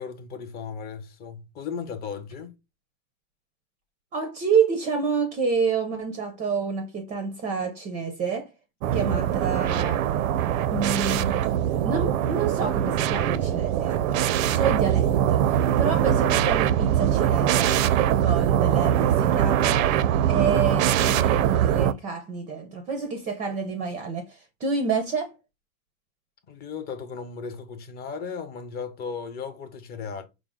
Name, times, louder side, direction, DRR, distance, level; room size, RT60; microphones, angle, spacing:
voice 1, 0.0-2.6 26.5-30.2, left 6 dB, 25° left, 0.6 m, -36 dB
voice 2, 4.1-8.5 8.9-10.0 10.7-11.4 11.8-19.8 20.3-25.3, right 5 dB, 20° right, 0.5 m, -28 dB
sound 1, 8.8-21.9, right 10 dB, 75° right, 0.5 m, -22 dB
4.9 x 2.0 x 3.5 m
supercardioid pair, 140°, 41 cm